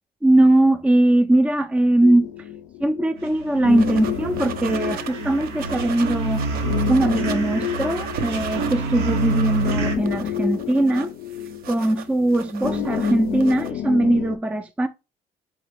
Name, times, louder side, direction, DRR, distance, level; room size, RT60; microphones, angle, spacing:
voice 1, 0.2-2.3 2.8-6.4 6.9-11.1 11.7-14.9, right 1 dB, 10° right, 0.3 m, -20 dB
sound 1, 2.0-14.4, left 10 dB, 75° left, 0.4 m, -31 dB
sound 2, 3.2-9.9, right 2 dB, 85° right, 1.0 m, -27 dB
sound 3, 3.8-5.1 5.4-8.7 9.0-13.7, right 9 dB, 60° right, 0.5 m, -37 dB
3.8 x 3.6 x 3.4 m
cardioid pair, 110°, 17 cm